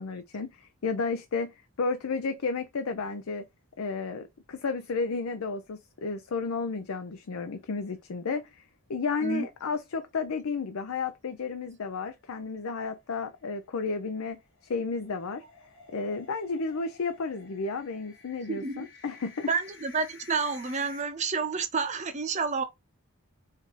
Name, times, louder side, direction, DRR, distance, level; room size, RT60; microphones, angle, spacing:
voice 1, 0.0-3.4 3.8-8.6 8.9-15.4 15.9-19.5, left 4 dB, 80° left, 0.5 m, -32 dB
sound 1, 6.2-7.0 7.3-7.4 7.8-7.9 12.0-21.0, left 4 dB, 60° left, 1.8 m, -53 dB
voice 2, 18.5-18.9 19.5-22.6, right 5 dB, 35° right, 0.6 m, -29 dB
5.0 x 2.6 x 3.9 m
head